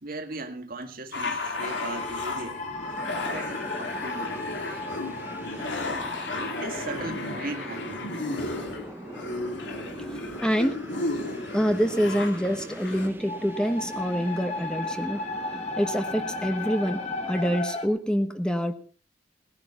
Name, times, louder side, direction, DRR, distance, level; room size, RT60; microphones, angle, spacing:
voice 1, 0.0-2.6 3.2-4.4 6.5-8.1 9.1-9.2, right 2 dB, 55° right, 1.9 m, -38 dB
sound 1, 1.1-13.1, left 2 dB, 75° left, 3.4 m, -34 dB
sound 2, 1.6-9.2 13.2-17.9, left 2 dB, 40° left, 2.8 m, -36 dB
sound 3, 2.6-17.6, right 1 dB, 10° right, 0.8 m, -42 dB
voice 2, 10.4-10.8 11.5-15.2 15.8-18.7, equal, 5° left, 1.1 m, -26 dB
18.5 x 11.0 x 5.6 m
head